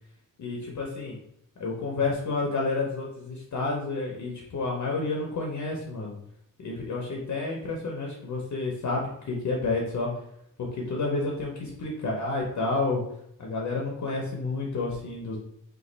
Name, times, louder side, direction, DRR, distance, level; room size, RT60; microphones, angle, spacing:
voice 1, 0.4-1.1 1.6-6.2 6.6-10.1 10.6-13.0 13.4-15.4, left 3 dB, 55° left, -1 dB, 0.7 m, -30 dB
3.0 x 2.4 x 3.9 m, 0.75 s
wide cardioid pair, 130°, 34 cm